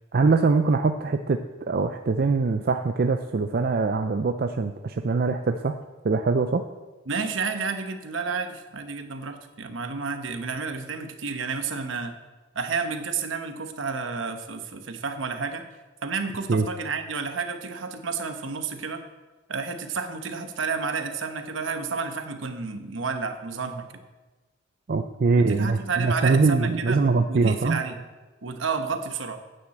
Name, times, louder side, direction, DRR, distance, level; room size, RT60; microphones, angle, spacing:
voice 1, 0.1-5.8 6.0-6.6 16.5-16.6 24.9-27.8, right 4 dB, 45° right, 7 dB, 0.4 m, -23 dB
voice 2, 7.1-12.1 12.5-15.6 16.0-19.0 19.5-23.9 25.4-27.0 27.3-28.0 28.4-29.4, right 5 dB, 70° right, 7 dB, 1.1 m, -31 dB
9.2 x 7.3 x 7.7 m, 1.2 s
head